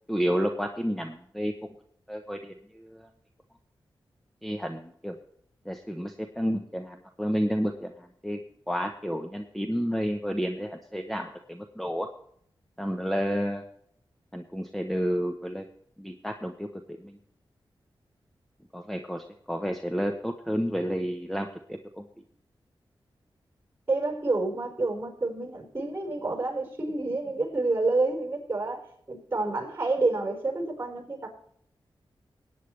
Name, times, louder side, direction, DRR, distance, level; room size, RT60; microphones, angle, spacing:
voice 1, 0.1-1.5 2.1-3.1 4.4-5.2 5.7-8.4 8.7-12.1 12.8-13.6 14.3-15.7 16.0-16.7 17.0-17.2 18.7-22.0, equal, ahead, 4 dB, 0.9 m, -31 dB
voice 2, 23.9-28.8 29.1-31.3, right 3 dB, 25° right, 2 dB, 4.9 m, -28 dB
18.5 x 9.4 x 3.3 m, 0.65 s
wide cardioid pair, 95°, 9 cm